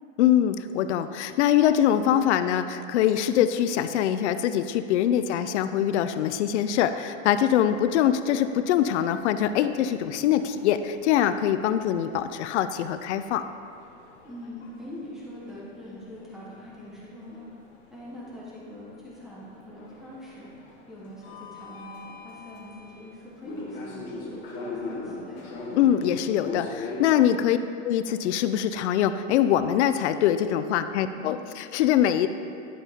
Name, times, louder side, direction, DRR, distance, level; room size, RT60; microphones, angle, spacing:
voice 1, 0.2-13.5 25.7-27.6 27.8-32.3, left 10 dB, 60° left, 11 dB, 0.5 m, -23 dB
sound 1, 7.6-27.1, left 3 dB, 30° left, 1.2 m, -42 dB
voice 2, 14.2-17.4 17.9-20.5 20.9-25.5 31.0-31.5, left 1 dB, ahead, -7 dB, 1.1 m, -43 dB
11.0 x 5.5 x 3.6 m, 2.7 s
supercardioid pair, 160°, 39 cm